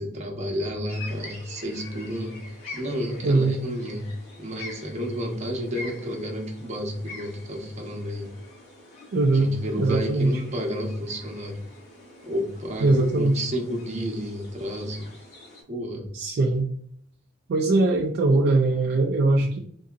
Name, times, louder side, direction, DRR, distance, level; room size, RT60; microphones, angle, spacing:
voice 1, 0.0-4.1 4.4-8.3 9.3-11.6 12.2-15.1 15.7-16.1, equal, 35° right, 1 dB, 0.8 m, -31 dB
birds early morning, 0.9-15.6, left 2 dB, 85° left, 1.5 m, -45 dB
voice 2, 3.2-3.6 9.1-10.4 12.8-13.4 16.1-16.7 17.5-19.6, right 2 dB, 50° right, 2 dB, 0.3 m, -21 dB
3.8 x 2.7 x 2.4 m, 0.62 s
head